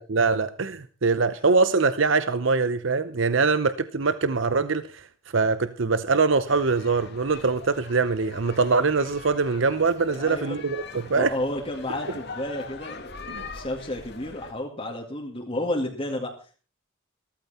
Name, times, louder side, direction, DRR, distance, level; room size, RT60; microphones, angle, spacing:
voice 1, 0.0-5.1 5.3-11.3 13.3-13.5, right 4 dB, 65° right, 13 dB, 0.8 m, -23 dB
sound 1, 6.5-14.5, left 4 dB, 50° left, 2.2 m, -42 dB
voice 2, 10.1-10.7 11.1-16.6, left 1 dB, 25° left, 0 dB, 2.3 m, -32 dB
16.0 x 14.5 x 4.3 m, 0.36 s
head